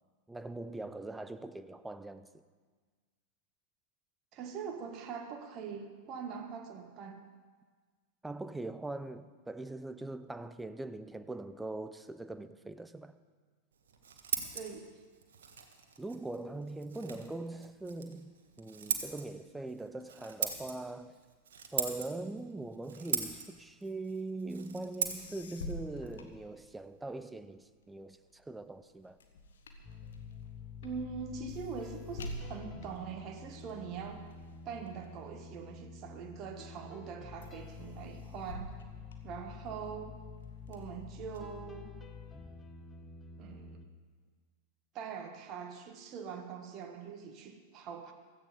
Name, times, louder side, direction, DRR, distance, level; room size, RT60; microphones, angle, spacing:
voice 1, 0.3-2.3 8.2-13.2 16.0-18.3 18.6-21.2 21.7-29.2, right 2 dB, 5° right, 0.6 m, -41 dB
voice 2, 4.3-7.2 14.5-14.9 30.8-34.3 34.6-38.8 39.2-40.2 40.7-41.9 43.4-43.8 44.9-48.1, right 6 dB, 35° right, 1.5 m, -43 dB
Scissors, 13.7-27.3, right 6 dB, 65° right, 1.6 m, -41 dB
sound 1, 25.0-27.1 27.6-36.2 36.7-37.1 37.4-39.9 40.4-41.4, left 1 dB, 65° left, 1.5 m, -48 dB
sound 2, 29.8-43.9, left 5 dB, 15° left, 1.0 m, -48 dB
16.0 x 14.0 x 5.2 m
figure-of-eight pair, 90°, 0 cm